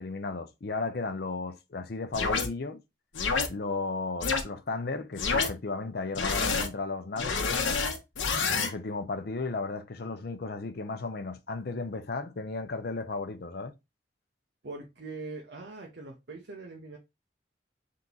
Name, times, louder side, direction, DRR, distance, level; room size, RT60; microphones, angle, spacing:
voice 1, 0.0-2.8 3.5-7.8 8.5-13.7, left 3 dB, 55° left, 0.6 m, -34 dB
sound 1, 2.1-2.5 3.1-3.5 4.2-4.4 5.2-5.5 6.1-6.7 7.2-8.7, left 4 dB, 85° left, 0.8 m, -27 dB
voice 2, 14.6-17.0, right 3 dB, 60° right, 0.8 m, -42 dB
3.7 x 2.9 x 3.8 m
head